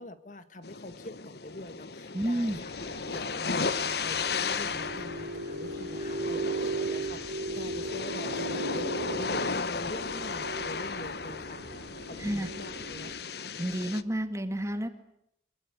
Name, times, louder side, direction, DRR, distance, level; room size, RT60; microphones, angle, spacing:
voice 1, 0.0-11.6 12.0-13.5, left 1 dB, 45° left, 11 dB, 1.9 m, -44 dB
sound 1, 0.6-14.0, left 5 dB, 65° left, 1.0 m, -35 dB
voice 2, 2.1-2.6 12.2-12.5 13.6-14.9, right 1 dB, 15° right, 9 dB, 1.8 m, -30 dB
sound 2, 2.5-13.1, right 2 dB, 85° right, 4.1 m, -37 dB
26.0 x 21.0 x 9.8 m, 0.77 s
head